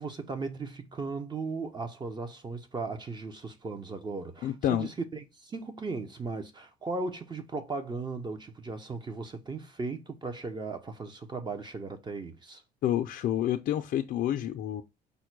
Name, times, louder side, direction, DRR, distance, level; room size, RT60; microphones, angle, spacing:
voice 1, 0.0-12.6, right 3 dB, 25° right, 0.7 m, -37 dB
voice 2, 4.4-4.9 12.8-14.8, left 11 dB, 60° left, 0.5 m, -28 dB
5.2 x 2.2 x 4.5 m
cardioid pair, 110°, 17 cm